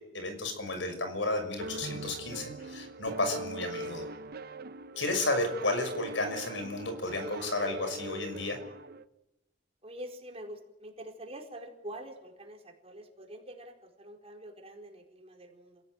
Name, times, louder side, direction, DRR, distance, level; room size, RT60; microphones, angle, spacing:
voice 1, 0.1-4.1 5.0-8.6, left 2 dB, 75° left, 7 dB, 6.1 m, -32 dB
sound 1, 1.6-9.1, right 2 dB, 55° right, 0.8 m, -41 dB
voice 2, 9.8-15.8, right 1 dB, 35° right, 2 dB, 4.7 m, -46 dB
27.5 x 17.0 x 9.4 m, 0.94 s
head